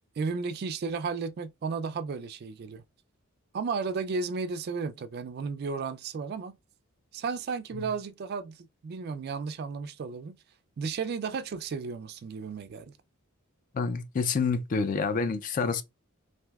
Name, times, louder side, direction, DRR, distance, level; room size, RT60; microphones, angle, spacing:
voice 1, 0.2-2.8 3.5-6.6 7.1-8.6 8.8-10.4 10.8-12.9, right 5 dB, 45° right, 0.3 m, -33 dB
voice 2, 13.7-15.8, left 5 dB, 40° left, 0.3 m, -28 dB
3.3 x 2.5 x 2.3 m
head